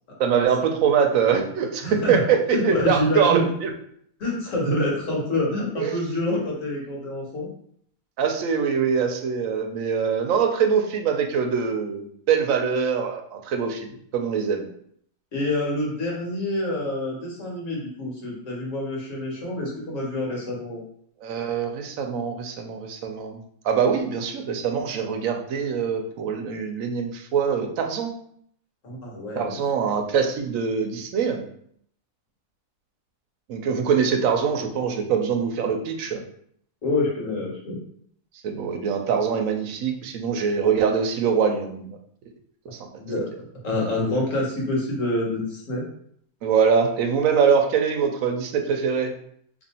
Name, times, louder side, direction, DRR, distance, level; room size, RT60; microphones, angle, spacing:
voice 1, 0.2-3.7 5.8-6.0 8.2-14.7 21.2-23.4 23.6-28.1 29.3-31.5 33.5-36.2 38.4-42.0 42.7-42.8 46.4-49.1, right 6 dB, 70° right, 4 dB, 0.9 m, -23 dB
voice 2, 1.8-2.2 2.5-3.5 4.2-7.5 15.3-20.8 28.8-29.6 36.8-37.8 43.0-43.2 43.6-45.8, left 1 dB, 65° left, -3 dB, 1.4 m, -27 dB
2.8 x 2.6 x 4.1 m, 0.66 s
omnidirectional pair, 1.5 m